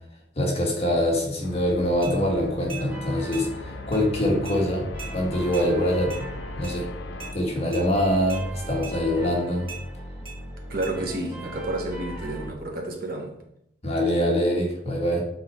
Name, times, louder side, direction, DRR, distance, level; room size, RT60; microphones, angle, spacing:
voice 1, 0.4-4.9 5.1-6.3 6.6-6.9 7.3-9.7 13.8-15.2, equal, 35° left, 1.6 m, -24 dB
sound 1, 1.4-7.3, left 3 dB, 85° left, 0.5 m, -41 dB
sound 2, 2.0-2.2 2.7-2.9 3.3-3.5 3.9-4.0 4.4-4.6 5.0-5.1 5.5-5.7 6.1-6.2 6.6-6.8 7.2-7.3 7.7-7.9 8.3-8.4 8.8-9.0 9.7-9.8 10.2-10.4 10.8-10.9, right 6 dB, 30° right, 2.1 m, -39 dB
sound 3, 2.8-12.5, equal, 10° right, 2.3 m, -38 dB
voice 2, 10.7-13.4, right 2 dB, 55° right, 1.0 m, -30 dB
6.3 x 4.2 x 4.3 m
head